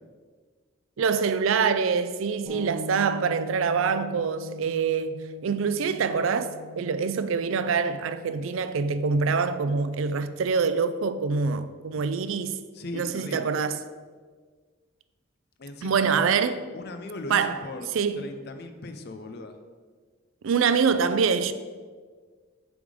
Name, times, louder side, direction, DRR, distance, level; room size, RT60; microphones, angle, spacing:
voice 1, 1.0-6.5 6.8-12.6 12.9-13.8 15.8-16.6 17.3-17.6 17.9-18.3 20.4-21.5, right 5 dB, 70° right, 0.4 m, -25 dB
sound 1, 2.5-12.1, equal, 25° right, 1.7 m, -43 dB
voice 2, 11.9-12.5 12.7-13.6 15.6-16.2 16.7-17.9 18.2-19.6, left 2 dB, 50° left, 0.5 m, -39 dB
7.0 x 3.5 x 5.0 m
head